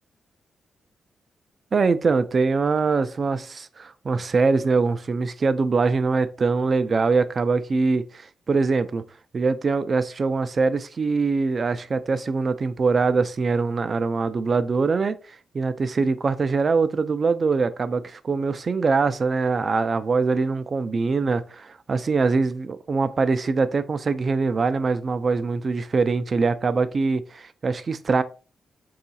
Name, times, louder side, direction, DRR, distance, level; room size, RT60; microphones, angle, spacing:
voice 1, 1.7-9.0 9.3-28.2, right 4 dB, 35° right, 0.3 m, -23 dB
3.7 x 2.4 x 4.0 m
wide cardioid pair, 135°, 0 cm